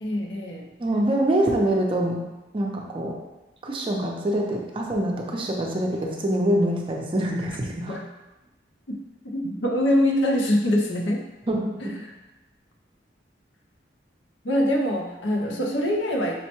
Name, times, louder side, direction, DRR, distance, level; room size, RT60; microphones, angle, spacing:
voice 1, 0.0-0.7 7.9-8.1 8.9-9.0 9.2-11.2 12.0-12.1 14.4-16.4, left 1 dB, 85° left, 0 dB, 0.6 m, -24 dB
voice 2, 0.8-2.2 2.5-3.1 3.6-8.0 11.5-11.9, right 1 dB, 30° right, 0 dB, 0.4 m, -25 dB
5.3 x 2.1 x 2.9 m, 1.0 s
head